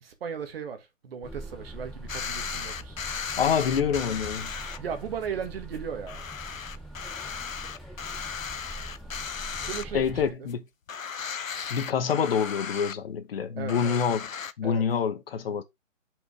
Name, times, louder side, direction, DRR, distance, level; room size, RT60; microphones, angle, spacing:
voice 1, 0.0-3.0 4.8-6.2 9.7-10.5 13.6-14.0 14.6-14.9, right 7 dB, 50° right, 1.7 m, -36 dB
sound 1, 1.2-10.3, right 1 dB, ahead, 0.9 m, -42 dB
sound 2, 2.1-4.8 5.2-5.3 5.7-5.8 6.1-10.2 10.5-10.6 10.9-12.9 13.7-14.5, left 6 dB, 85° left, 0.7 m, -36 dB
voice 2, 3.4-4.5 9.9-10.6 11.7-14.3 14.6-15.6, left 7 dB, 50° left, 1.2 m, -26 dB
6.0 x 5.3 x 3.3 m
figure-of-eight pair, 135°, 39 cm